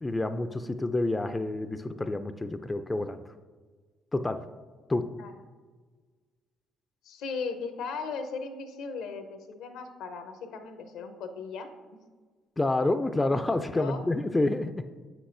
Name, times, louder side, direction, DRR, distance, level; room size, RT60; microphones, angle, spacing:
voice 1, 0.0-3.2 4.1-4.4 4.9-5.1 12.6-14.7, left 2 dB, 20° left, 9 dB, 0.4 m, -28 dB
voice 2, 7.0-11.7 13.6-14.0, left 5 dB, 75° left, 8 dB, 0.7 m, -37 dB
7.7 x 6.0 x 2.6 m, 1.4 s
hypercardioid pair, 55°, 0 cm